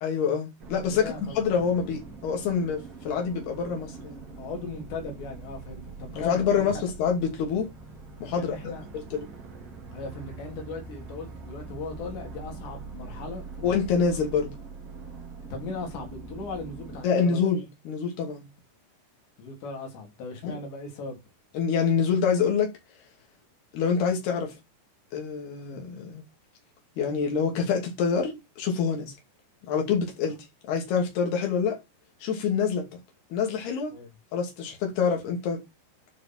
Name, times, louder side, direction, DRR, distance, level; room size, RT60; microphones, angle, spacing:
voice 1, 0.0-1.0 1.4-4.2 6.3-7.7 8.2-8.7 9.1-9.3 13.6-14.5 17.0-18.4 20.4-20.6 21.5-22.7 23.7-24.5 25.1-26.2 27.0-29.1 29.7-30.4 30.7-31.8 32.2-32.9 33.3-33.9 34.3-35.6, left 6 dB, 70° left, 4.5 m, -26 dB
sound 1, 0.6-17.0, right 4 dB, 45° right, 2.6 m, -43 dB
voice 2, 0.8-1.5 4.4-6.7 8.3-8.8 9.9-13.9 15.5-17.4 19.4-21.2 33.9-34.1, left 3 dB, 85° left, 5.3 m, -38 dB
12.0 x 4.7 x 4.5 m
omnidirectional pair, 4.8 m